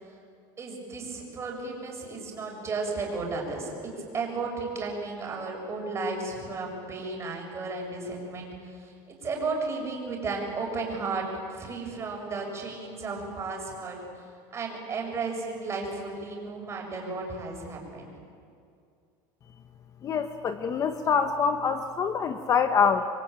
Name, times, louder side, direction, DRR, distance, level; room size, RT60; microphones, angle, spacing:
voice 1, 0.6-8.5 8.8-14.0 14.5-18.1, right 3 dB, 25° right, 0 dB, 6.8 m, -34 dB
voice 2, 20.0-23.1, left 6 dB, 30° left, 8 dB, 1.1 m, -25 dB
27.0 x 23.5 x 9.0 m, 2.4 s
cardioid pair, 150°, 11 cm